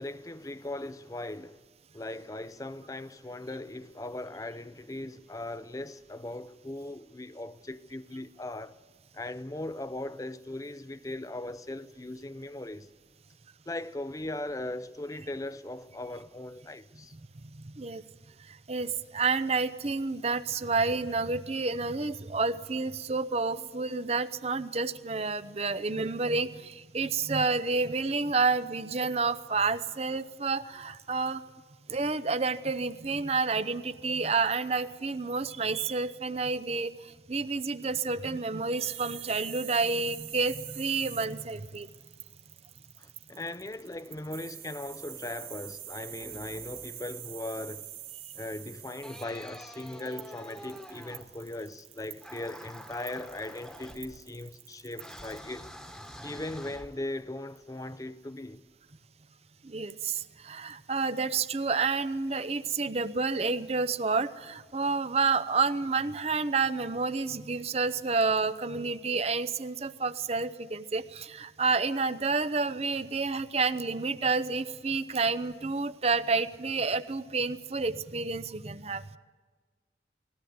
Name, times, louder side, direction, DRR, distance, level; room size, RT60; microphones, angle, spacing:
voice 1, 0.0-1.6 1.9-8.7 9.1-12.9 13.7-17.2 23.6-23.7 24.2-24.3 43.0-47.9 48.3-55.7 56.2-58.6 68.7-68.9, left 1 dB, 20° left, 0.6 m, -39 dB
voice 2, 18.7-31.4 31.9-41.9 59.6-79.0, right 4 dB, 35° right, 0.7 m, -29 dB
sound 1, 38.8-55.4, right 12 dB, 50° right, 1.6 m, -45 dB
sound 2, 46.1-47.2 48.9-51.5 52.2-54.5 55.0-57.3, equal, 5° left, 1.3 m, -47 dB
20.5 x 17.0 x 9.5 m
head